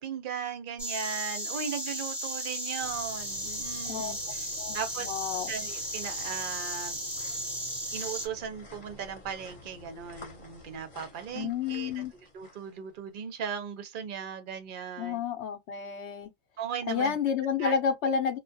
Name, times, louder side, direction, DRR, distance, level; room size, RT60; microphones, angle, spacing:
voice 1, 0.0-4.5 4.7-5.1 5.5-7.0 7.9-11.9 12.3-15.2 16.6-17.2 17.6-17.7, right 7 dB, 55° right, 0.6 m, -37 dB
Insect, 0.8-8.3, equal, ahead, 0.7 m, -35 dB
sound 1, 2.8-13.1 13.7-13.8, left 2 dB, 35° left, 0.9 m, -51 dB
voice 2, 4.6-5.5 11.3-12.1 15.0-16.3 16.9-18.4, left 6 dB, 65° left, 0.9 m, -30 dB
2.3 x 2.2 x 2.6 m
omnidirectional pair, 1.3 m